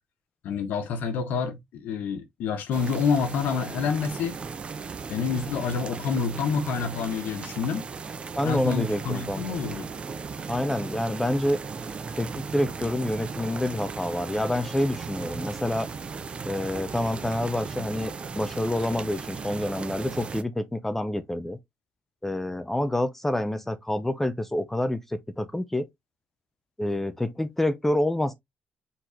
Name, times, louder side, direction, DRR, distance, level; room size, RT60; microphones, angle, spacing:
voice 1, 0.4-4.4 5.1-7.8 8.4-9.9, left 5 dB, 90° left, 1.2 m, -28 dB
sound 1, 2.7-20.4, right 5 dB, 35° right, 0.6 m, -36 dB
voice 2, 8.3-9.4 10.5-11.6 12.2-15.9 16.4-21.6 22.2-25.9 26.8-28.3, left 1 dB, 10° left, 0.6 m, -27 dB
4.7 x 4.0 x 2.8 m
cardioid pair, 125°, 3 cm